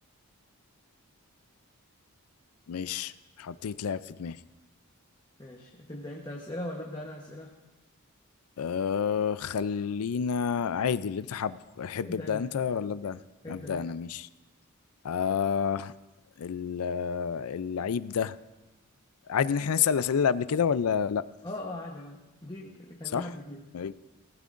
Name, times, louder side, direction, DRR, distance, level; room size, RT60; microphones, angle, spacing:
voice 1, 2.7-3.1 3.4-4.4 8.6-13.2 13.5-14.3 15.0-15.9 16.4-18.3 19.3-21.2 23.1-23.3 23.7-23.9, left 7 dB, 75° left, 16 dB, 0.4 m, -29 dB
voice 2, 5.4-7.5 12.0-12.5 13.4-13.9 21.4-23.6, left 1 dB, 20° left, -2 dB, 1.0 m, -40 dB
19.0 x 15.0 x 2.5 m, 1.1 s
head